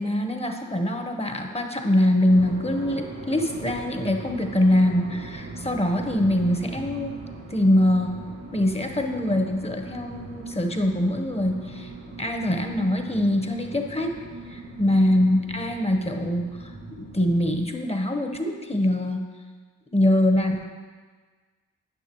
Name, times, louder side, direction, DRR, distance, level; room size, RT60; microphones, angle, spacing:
voice 1, 0.0-7.2 7.5-8.2 8.5-11.9 12.2-14.2 14.5-19.3 19.9-20.6, left 1 dB, 20° left, 4 dB, 1.0 m, -23 dB
sound 1, 2.3-17.6, right 2 dB, 80° right, 2.0 m, -40 dB
10.5 x 5.7 x 3.0 m, 1.4 s
supercardioid pair, 45°, 32 cm